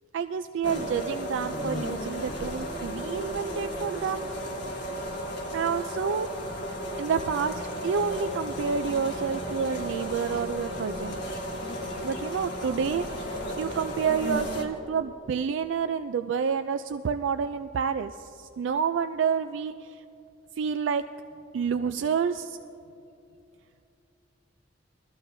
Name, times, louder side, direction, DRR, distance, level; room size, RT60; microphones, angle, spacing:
voice 1, 0.1-4.3 5.5-6.3 7.0-11.2 12.0-20.0 20.6-21.0 21.5-22.6, right 6 dB, 80° right, 9 dB, 0.3 m, -29 dB
sound 1, 0.6-14.6, equal, 60° left, 1.8 m, -34 dB
21.0 x 13.5 x 2.7 m, 2.6 s
head